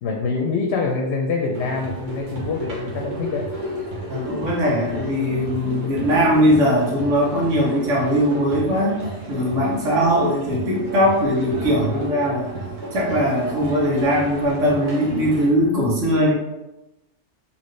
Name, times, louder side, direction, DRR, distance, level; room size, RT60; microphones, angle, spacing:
voice 1, 0.0-3.5, left 4 dB, 65° left, 1 dB, 0.8 m, -25 dB
sound 1, 1.5-15.5, right 1 dB, 45° right, 0.9 m, -33 dB
voice 2, 4.1-9.0 9.3-12.5 12.9-16.3, equal, 90° right, -4 dB, 1.3 m, -20 dB
4.2 x 2.8 x 3.2 m, 0.97 s
omnidirectional pair, 1.2 m